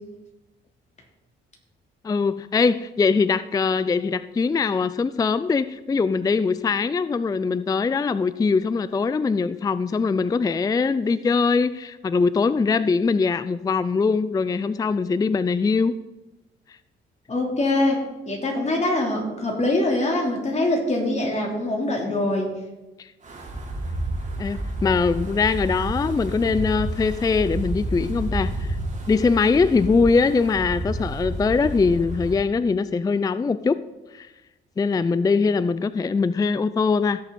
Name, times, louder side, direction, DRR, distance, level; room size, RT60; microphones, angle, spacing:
voice 1, 2.0-15.9 23.0-23.1 24.4-28.8 29.1-33.8 34.1-34.3 34.8-37.2, left 4 dB, 20° left, 14 dB, 0.4 m, -22 dB
voice 2, 17.3-18.0 18.3-22.5, left 2 dB, 35° left, -1 dB, 3.6 m, -23 dB
Wind, 23.2-32.4, right 1 dB, 40° right, 3.6 m, -30 dB
16.5 x 6.9 x 4.2 m, 1.0 s
cardioid pair, 90°, 20 cm